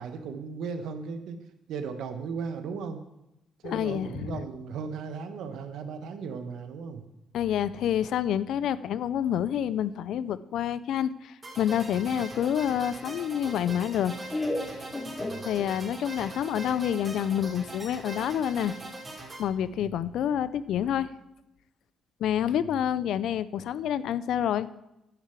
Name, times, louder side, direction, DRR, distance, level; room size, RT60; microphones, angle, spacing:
voice 1, 0.0-3.0 3.6-7.0 12.1-12.2 15.2-15.5 19.7-20.1 22.5-22.6, right 5 dB, 80° right, 8 dB, 1.2 m, -37 dB
voice 2, 3.6-4.4 7.3-14.1 14.7-14.8 15.4-18.8 19.4-21.1 22.2-24.7, left 10 dB, 75° left, 16 dB, 0.5 m, -28 dB
sound 1, 11.4-19.4, right 2 dB, 25° right, 2.8 m, -41 dB
Laughter, 12.4-16.0, left 1 dB, 20° left, 1.6 m, -35 dB
9.7 x 6.7 x 8.1 m, 0.89 s
cardioid pair, 90°, 0 cm